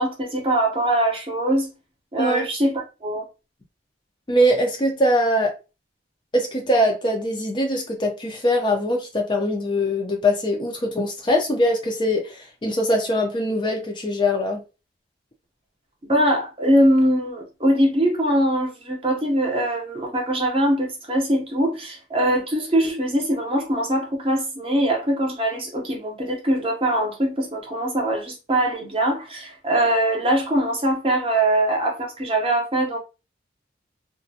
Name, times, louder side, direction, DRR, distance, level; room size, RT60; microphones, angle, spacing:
voice 1, 0.0-1.7 2.1-3.2 16.0-33.0, right 1 dB, 30° right, 0.7 m, -22 dB
voice 2, 2.2-2.5 4.3-5.5 6.3-14.6, equal, 25° left, 0.4 m, -22 dB
2.4 x 2.1 x 2.6 m
head